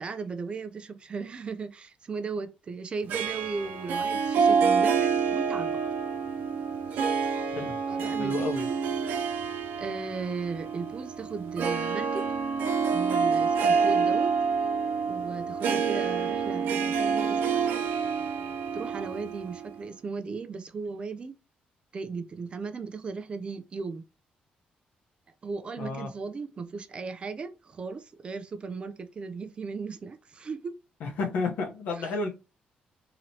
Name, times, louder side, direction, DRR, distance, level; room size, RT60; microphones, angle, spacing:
voice 1, 0.0-5.9 6.9-7.2 7.9-8.8 9.8-12.4 12.9-14.3 15.1-17.7 18.7-21.4 21.9-24.0 25.4-30.8 32.0-32.1, right 4 dB, 35° right, 0.4 m, -36 dB
Harp, 3.1-19.8, right 6 dB, 90° right, 0.5 m, -27 dB
voice 2, 8.2-8.7 25.8-26.1 31.0-32.3, left 3 dB, 75° left, 0.8 m, -31 dB
2.9 x 2.9 x 2.7 m
cardioid pair, 120°, 3 cm